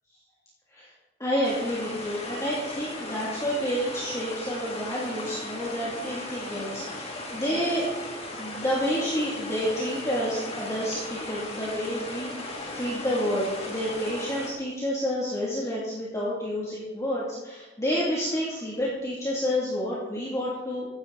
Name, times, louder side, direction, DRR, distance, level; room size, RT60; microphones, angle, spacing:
voice 1, 1.2-7.9 8.3-20.9, equal, 20° left, -7 dB, 3.1 m, -29 dB
sound 1, 1.4-14.5, left 2 dB, 35° left, 3.1 m, -37 dB
16.0 x 12.0 x 4.3 m, 1.1 s
head